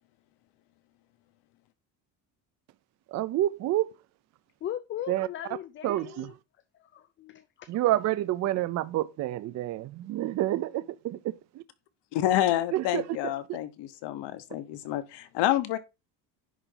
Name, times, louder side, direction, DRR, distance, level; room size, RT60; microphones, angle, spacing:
voice 1, 3.1-3.9 5.1-5.3 5.8-6.3 7.7-11.2 12.7-13.0, right 14 dB, 40° right, 0.4 m, -28 dB
voice 2, 4.6-6.3 6.8-7.4, left 11 dB, 30° left, 0.4 m, -38 dB
voice 3, 12.1-15.8, left 13 dB, 75° left, 1.1 m, -28 dB
10.0 x 4.0 x 3.8 m
cardioid pair, 160°, 42 cm